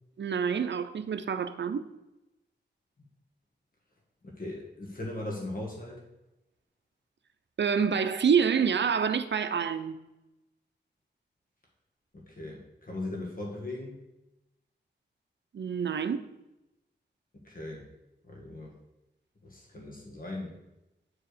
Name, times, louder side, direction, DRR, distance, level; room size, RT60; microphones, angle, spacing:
voice 1, 0.2-1.8 7.6-10.0 15.5-16.3, right 6 dB, 80° right, 0.6 m, -27 dB
voice 2, 4.2-6.0 12.1-14.0 17.3-17.9 18.2-18.7 19.4-20.6, left 2 dB, 50° left, 1.6 m, -39 dB
8.8 x 4.8 x 5.0 m
wide cardioid pair, 100°, 18 cm